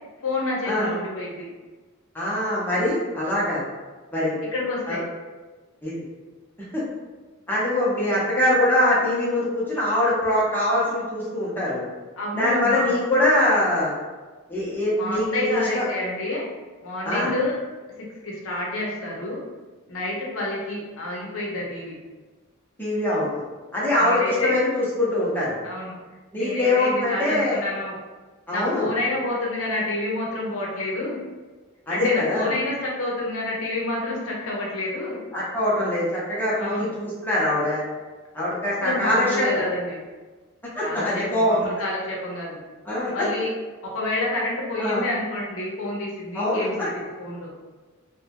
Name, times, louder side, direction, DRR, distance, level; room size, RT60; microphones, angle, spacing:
voice 1, 0.2-1.5 4.5-5.0 12.2-12.9 15.0-16.4 16.8-17.6 18.2-19.4 19.9-22.0 24.0-24.6 25.6-26.0 26.3-27.9 28.5-31.2 31.9-35.2 36.6-36.9 38.8-40.0 40.8-42.6 43.1-43.5 43.8-46.9 47.2-47.5, left 2 dB, 75° left, -3 dB, 0.7 m, -28 dB
voice 2, 2.1-3.6 4.1-4.4 4.9-5.0 5.8-5.9 6.7-6.8 7.5-11.9 12.4-13.9 14.5-15.9 17.0-17.3 22.8-23.3 23.7-25.6 26.3-27.6 28.5-28.9 31.9-32.5 35.3-37.8 38.3-39.7 40.8-41.6 42.9-43.3 44.8-45.1 46.3-47.0, left 1 dB, 10° left, -8 dB, 0.7 m, -23 dB
2.7 x 2.2 x 2.8 m, 1.3 s
head